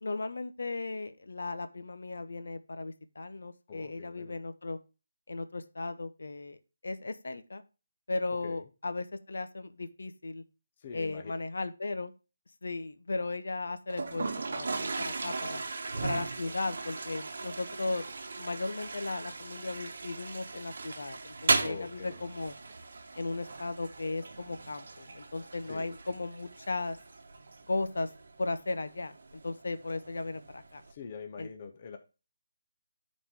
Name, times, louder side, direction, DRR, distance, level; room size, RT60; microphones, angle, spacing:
voice 1, 0.0-4.8 5.3-7.6 8.1-10.4 10.9-12.1 12.6-15.6 16.0-18.1 18.4-22.5 23.2-27.0 27.7-28.1 28.4-30.8 31.4-31.5, left 3 dB, 70° left, 10 dB, 0.8 m, -36 dB
voice 2, 3.7-4.4 8.4-8.7 10.8-11.3 15.9-16.1 16.4-16.5 21.6-22.2 25.7-26.2 30.9-32.0, left 6 dB, 25° left, 6 dB, 0.6 m, -45 dB
Toilet flush, 13.9-30.9, right 3 dB, 50° right, 1.0 m, -37 dB
10.0 x 4.3 x 3.5 m, 0.30 s
hypercardioid pair, 175°, 0 cm